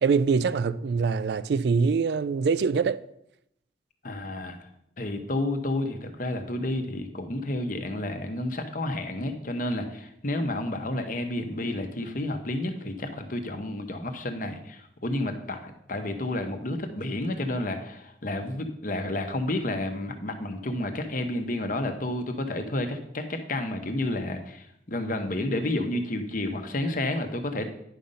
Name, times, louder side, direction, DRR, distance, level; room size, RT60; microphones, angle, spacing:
voice 1, 0.0-3.0, right 5 dB, 60° right, 0.3 m, -24 dB
voice 2, 4.0-4.7 5.0-27.7, left 1 dB, 45° left, 1.0 m, -30 dB
10.0 x 5.2 x 5.5 m
head